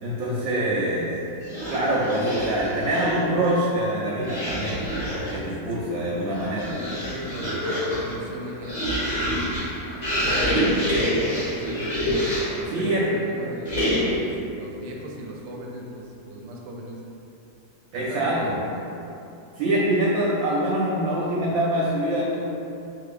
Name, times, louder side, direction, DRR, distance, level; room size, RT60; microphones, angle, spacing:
voice 1, 0.0-1.1 1.7-4.8 5.3-6.8 12.7-13.1 17.9-18.7 19.6-22.4, right 1 dB, 70° right, -5 dB, 0.9 m, -24 dB
sound 1, 1.4-3.3 4.2-5.4 6.2-12.7 13.6-14.3, equal, 30° left, 1.0 m, -26 dB
voice 2, 5.4-6.1 6.5-6.6 7.0-9.5 10.1-12.1 12.7-17.0 17.9-19.0, right 1 dB, 90° right, -1 dB, 1.2 m, -38 dB
3.8 x 3.0 x 2.5 m, 2.8 s
omnidirectional pair, 1.8 m